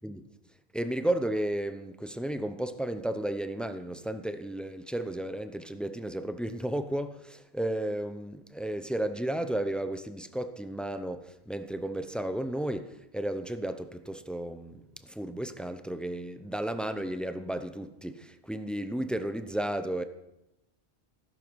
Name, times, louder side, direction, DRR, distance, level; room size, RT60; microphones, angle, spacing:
voice 1, 0.7-20.0, right 1 dB, ahead, 0.5 m, -33 dB
15.0 x 12.5 x 4.6 m
omnidirectional pair, 1.1 m